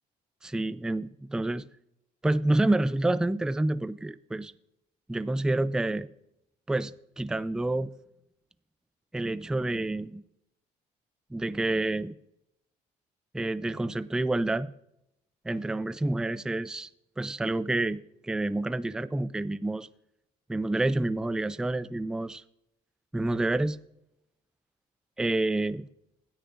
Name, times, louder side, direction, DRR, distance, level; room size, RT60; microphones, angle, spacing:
voice 1, 0.4-1.7 2.2-4.5 5.1-6.1 6.7-7.9 9.1-10.2 11.3-12.1 13.3-14.7 15.4-16.9 17.2-19.9 20.5-22.4 23.1-23.8 25.2-25.9, right 2 dB, 5° right, 0.3 m, -28 dB
16.0 x 10.5 x 2.5 m
cardioid pair, 110°, 17 cm